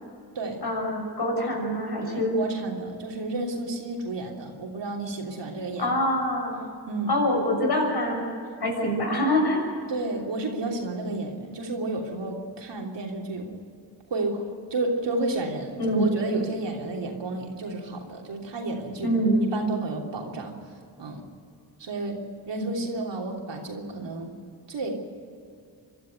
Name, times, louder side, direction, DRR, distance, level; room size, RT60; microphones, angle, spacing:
voice 1, 0.6-2.4 5.8-6.6 7.1-8.3 8.6-9.6 15.8-16.1 19.0-19.5, equal, 65° left, 1 dB, 6.7 m, -25 dB
voice 2, 2.0-5.9 6.9-7.1 8.8-9.0 9.9-13.5 14.1-19.1 19.5-20.6 21.0-21.2 21.8-24.3 24.7-24.9, right 2 dB, 80° right, 1 dB, 3.2 m, -31 dB
24.0 x 12.5 x 9.3 m, 2.4 s
cardioid pair, 60°, 42 cm